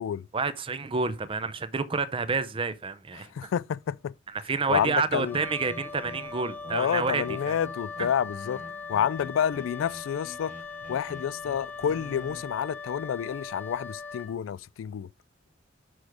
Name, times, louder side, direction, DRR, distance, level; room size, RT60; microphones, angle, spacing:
voice 1, 0.3-3.3 4.4-7.6, right 4 dB, 30° right, 0.6 m, -29 dB
voice 2, 3.1-4.1 4.7-5.4 6.7-8.6 8.9-10.5 10.9-15.1, left 8 dB, 90° left, 0.3 m, -29 dB
sound 1, 4.7-12.4, equal, 45° right, 1.6 m, -47 dB
Wind instrument woodwind instrument, 5.2-14.4, left 4 dB, 10° left, 0.6 m, -40 dB
6.2 x 4.9 x 4.8 m
head